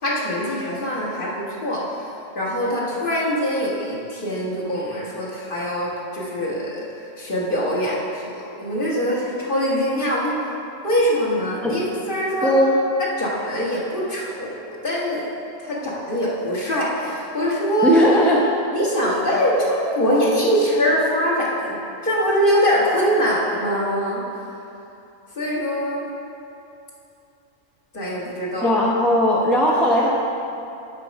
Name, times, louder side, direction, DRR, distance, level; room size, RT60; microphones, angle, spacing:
voice 1, 0.0-2.1 2.3-10.5 10.8-12.6 13.0-15.3 15.6-18.0 18.7-21.8 22.0-24.5 25.3-26.1 27.9-28.7, equal, 40° left, -5 dB, 1.6 m, -23 dB
voice 2, 12.4-12.8 17.8-18.4 28.6-30.1, equal, ahead, -4 dB, 0.6 m, -17 dB
7.5 x 6.5 x 5.1 m, 2.7 s
omnidirectional pair, 1.4 m